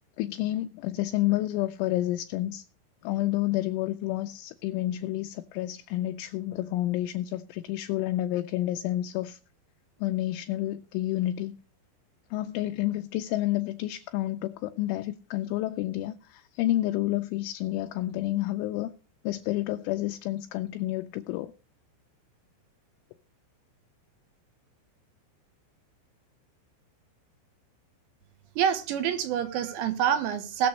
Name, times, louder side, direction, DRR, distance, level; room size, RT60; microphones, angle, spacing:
voice 1, 0.2-2.6 3.0-9.4 10.0-11.6 12.3-18.9 19.2-21.5, left 15 dB, 80° left, 2.9 m, -29 dB
voice 2, 28.6-30.7, right 9 dB, 75° right, 3.1 m, -26 dB
20.0 x 6.9 x 3.2 m
omnidirectional pair, 5.8 m